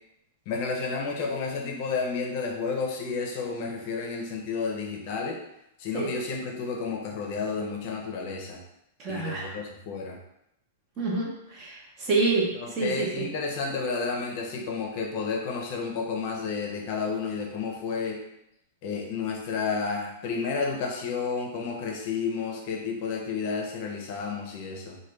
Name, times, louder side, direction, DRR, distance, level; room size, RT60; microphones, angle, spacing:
voice 1, 0.5-5.4 5.8-8.6 9.1-10.2 12.5-18.2 18.8-25.0, left 4 dB, 40° left, 1 dB, 0.6 m, -31 dB
voice 2, 9.0-9.6 11.0-11.3 11.5-12.5 12.8-13.2, right 3 dB, 25° right, -3 dB, 0.8 m, -27 dB
3.1 x 2.2 x 3.2 m, 0.82 s
supercardioid pair, 165°, 0 cm